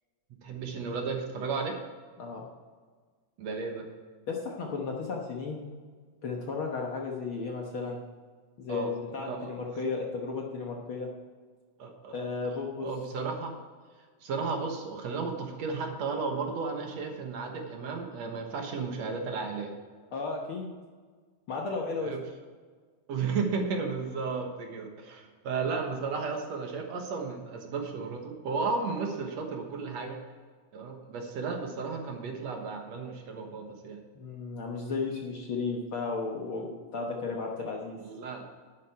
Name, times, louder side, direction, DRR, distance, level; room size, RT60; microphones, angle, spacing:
voice 1, 0.4-1.8 3.4-3.8 8.7-8.9 9.2-9.5 11.8-12.1 12.8-13.5 14.2-19.7 22.0-22.2 23.1-30.2 30.7-34.0 38.0-38.4, right 4 dB, 65° right, 3 dB, 2.4 m, -34 dB
voice 2, 4.3-5.6 6.2-8.0 8.6-11.1 12.1-12.9 20.1-20.7 21.5-22.2 34.1-38.0, left 4 dB, 55° left, 0 dB, 1.6 m, -34 dB
11.0 x 9.4 x 4.7 m, 1.5 s
omnidirectional pair, 3.4 m